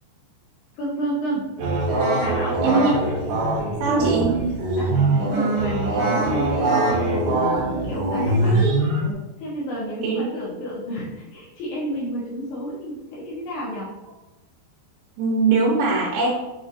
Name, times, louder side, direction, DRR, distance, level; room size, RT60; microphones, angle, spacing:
voice 1, 0.8-1.5 2.1-2.6 3.6-4.2 4.8-8.7 9.4-13.9, equal, 75° left, -6 dB, 2.6 m, -30 dB
sound 1, 1.6-9.1, right 2 dB, 65° right, 2.1 m, -22 dB
voice 2, 3.8-4.3 10.0-10.3 15.2-16.3, right 4 dB, 85° right, -4 dB, 3.1 m, -20 dB
7.2 x 2.5 x 2.6 m, 1.0 s
omnidirectional pair, 5.2 m